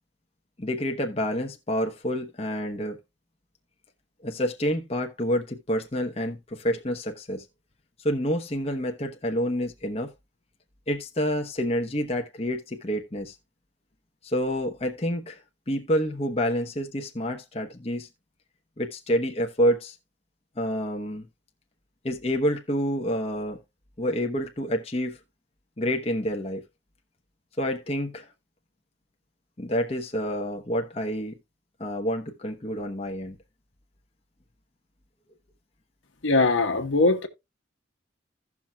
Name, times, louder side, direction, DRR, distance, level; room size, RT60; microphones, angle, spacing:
voice 1, 0.6-3.0 4.2-7.4 8.0-10.1 10.9-13.3 14.2-15.4 15.7-18.1 18.8-19.9 20.6-21.3 22.0-23.6 24.0-25.2 25.8-26.6 27.6-28.3 29.6-31.4 31.8-33.4, equal, 30° left, 0.9 m, -28 dB
voice 2, 36.2-37.3, left 3 dB, 80° left, 1.2 m, -21 dB
16.0 x 5.9 x 2.3 m
head